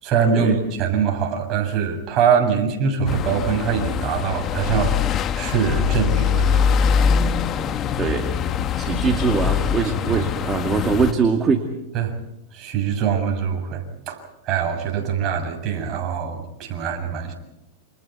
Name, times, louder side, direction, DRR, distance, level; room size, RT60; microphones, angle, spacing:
voice 1, 0.0-7.1 9.0-9.1 9.8-10.5 11.9-12.2 12.5-17.3, right 6 dB, 40° right, 3 dB, 7.1 m, -23 dB
sound 1, 3.1-11.1, left 7 dB, 30° left, 1.3 m, -23 dB
voice 2, 8.0-8.3 8.8-11.7, right 5 dB, 20° right, 4 dB, 2.3 m, -22 dB
29.5 x 27.5 x 4.6 m, 0.88 s
supercardioid pair, 130°, 0 cm